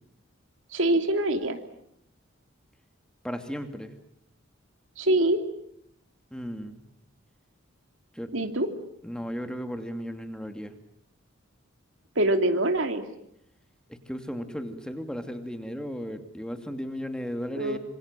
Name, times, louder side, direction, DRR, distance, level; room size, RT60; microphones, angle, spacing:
voice 1, 0.7-1.6 5.0-5.4 8.3-8.7 12.2-13.0 17.6-17.8, right 1 dB, 75° right, 6 dB, 2.9 m, -24 dB
voice 2, 3.2-3.9 6.3-6.9 8.1-8.3 9.0-10.7 13.9-17.8, equal, 5° left, 7 dB, 2.6 m, -35 dB
27.0 x 26.0 x 7.6 m, 0.72 s
head